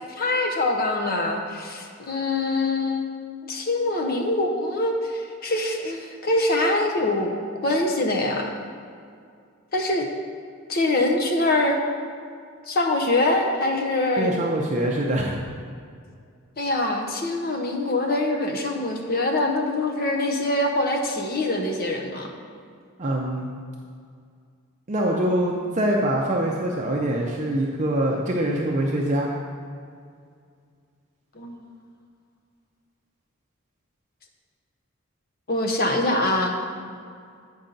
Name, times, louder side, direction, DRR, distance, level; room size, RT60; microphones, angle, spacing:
voice 1, 0.1-3.1 3.4-7.3 7.6-8.5 9.7-10.1 10.7-11.8 12.7-14.3 16.6-22.3 31.3-31.7 35.5-36.6, left 2 dB, 45° left, 3 dB, 0.8 m, -24 dB
voice 2, 14.2-15.4 23.0-23.5 24.9-29.3, right 1 dB, 35° right, -2 dB, 0.5 m, -24 dB
8.6 x 5.5 x 3.9 m, 2.2 s
head